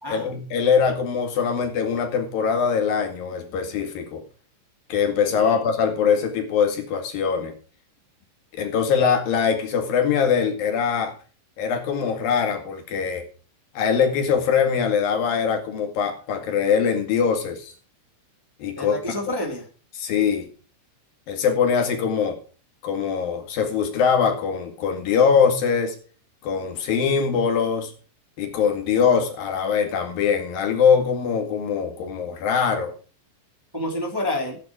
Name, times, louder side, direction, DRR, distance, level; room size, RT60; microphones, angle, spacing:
voice 1, 0.1-4.2 4.9-7.5 8.5-11.1 11.6-13.3 13.8-17.7 18.6-19.0 20.0-20.5 21.3-22.4 22.8-26.0 26.4-27.9 28.4-32.9, left 6 dB, 85° left, 4 dB, 3.9 m, -22 dB
voice 2, 5.3-5.7 18.8-19.7 33.7-34.6, left 1 dB, 10° right, 1 dB, 2.2 m, -29 dB
15.0 x 9.3 x 4.9 m, 0.39 s
omnidirectional pair, 4.0 m